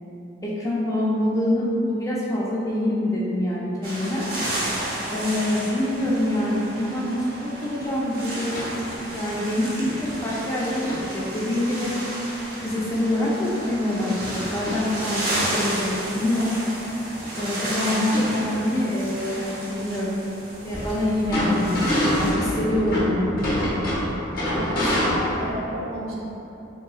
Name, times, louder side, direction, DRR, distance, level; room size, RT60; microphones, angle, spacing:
voice 1, 0.4-4.3 5.1-9.9 10.2-11.9 12.6-16.5 17.4-20.2 20.6-23.3, left 1 dB, 15° left, -6 dB, 0.5 m, -25 dB
sound 1, 3.8-22.3, right 1 dB, 45° right, 0.7 m, -32 dB
voice 2, 5.4-5.7 24.4-26.1, equal, 90° right, -4 dB, 0.8 m, -33 dB
sound 2, 8.5-8.8 9.8-10.0 10.3-10.4 10.8-11.1 14.7-14.9 15.4-15.5 16.7-16.8 17.2-17.3 17.9-18.8 20.7-25.5, left 1 dB, 45° left, 0.8 m, -26 dB
3.8 x 3.7 x 2.3 m, 2.9 s
head